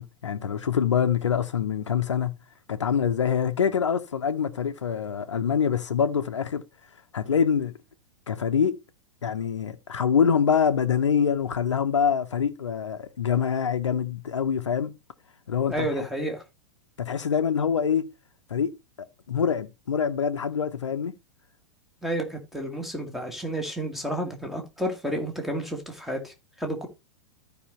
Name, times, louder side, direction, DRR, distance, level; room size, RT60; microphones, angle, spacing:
voice 1, 0.0-2.3 2.7-6.6 7.1-7.7 8.3-8.8 9.2-14.9 15.5-16.0 17.0-18.1 18.5-18.8 19.3-21.1, left 7 dB, 70° left, 0.7 m, -25 dB
voice 2, 15.7-16.4 22.0-26.9, right 1 dB, ahead, 1.8 m, -31 dB
14.0 x 5.0 x 3.0 m
figure-of-eight pair, 100°, 16 cm